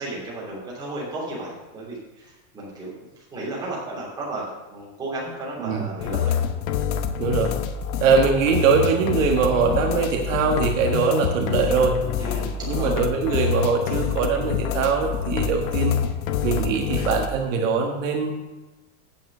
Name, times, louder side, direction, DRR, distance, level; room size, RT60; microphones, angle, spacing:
voice 1, 0.0-2.9 3.2-6.4 12.2-13.0 16.9-17.1, right 2 dB, 10° right, -6 dB, 3.0 m, -34 dB
sound 1, 6.0-17.3, left 8 dB, 75° left, 1.0 m, -26 dB
voice 2, 7.2-7.5 8.0-12.0 12.7-16.0 16.4-18.3, right 5 dB, 60° right, 2 dB, 1.4 m, -22 dB
9.1 x 7.3 x 6.5 m, 1.1 s
supercardioid pair, 180°, 42 cm